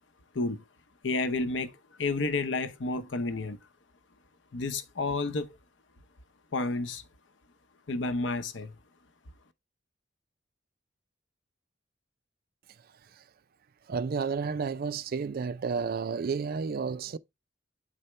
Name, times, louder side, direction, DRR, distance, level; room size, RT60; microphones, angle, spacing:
voice 1, 1.0-3.6 4.5-5.6 6.5-7.0 7.9-8.8, left 3 dB, 75° left, 0.8 m, -31 dB
voice 2, 13.9-17.2, right 5 dB, 50° right, 0.4 m, -31 dB
8.9 x 4.2 x 3.2 m
head